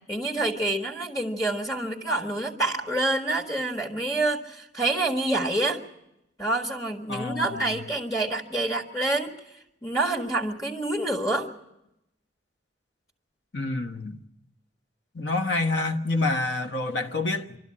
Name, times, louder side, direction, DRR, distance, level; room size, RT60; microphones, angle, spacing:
voice 1, 0.1-5.8 6.4-9.3 9.8-11.5, right 2 dB, 20° left, 1.6 m, -27 dB
voice 2, 7.1-7.7 13.5-14.2 15.1-17.6, left 2 dB, 70° left, 1.2 m, -27 dB
26.0 x 12.5 x 8.6 m
head